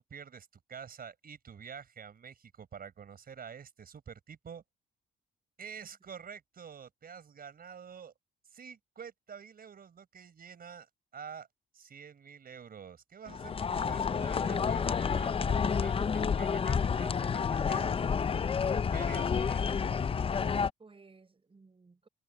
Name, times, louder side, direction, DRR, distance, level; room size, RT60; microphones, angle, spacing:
voice 1, 0.0-4.6 5.6-8.1 8.5-11.5 11.7-17.9 18.9-19.8, right 7 dB, 50° right, 4.8 m, -48 dB
sound 1, 13.3-20.7, left 6 dB, 30° left, 0.5 m, -30 dB
voice 2, 20.8-22.1, right 4 dB, 30° right, 5.6 m, -57 dB
cardioid pair, 90°, 20 cm